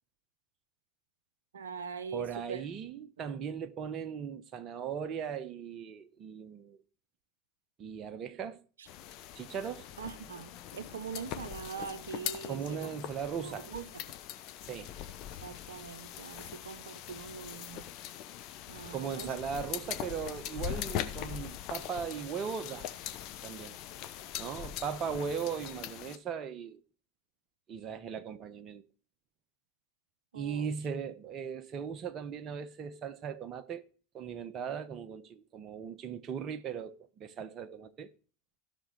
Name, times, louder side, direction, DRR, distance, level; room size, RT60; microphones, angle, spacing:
voice 1, 1.5-2.6 3.2-3.3 8.8-8.9 10.0-12.9 13.4-14.0 15.4-17.9 18.7-19.3 30.3-30.7, right 6 dB, 75° right, 0.7 m, -43 dB
voice 2, 2.1-6.8 7.8-8.6 9.3-9.9 12.5-13.7 14.7-14.9 18.9-22.9 23.4-23.8 24.4-26.8 27.7-28.8 30.3-33.8 34.1-38.1, right 7 dB, 40° right, 1.1 m, -38 dB
sound 1, 8.9-26.2, left 11 dB, 50° left, 1.1 m, -42 dB
15.0 x 6.3 x 4.0 m
figure-of-eight pair, 80°, 0 cm